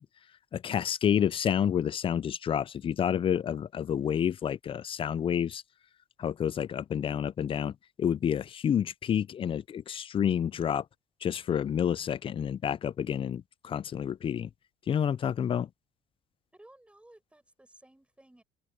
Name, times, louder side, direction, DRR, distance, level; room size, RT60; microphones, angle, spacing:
voice 1, 0.5-5.6 6.2-10.8 11.2-14.5 14.9-15.7, left 8 dB, 30° left, 0.4 m, -29 dB
voice 2, 16.5-18.4, right 1 dB, 5° right, 7.7 m, -57 dB
cardioid pair, 110°, 17 cm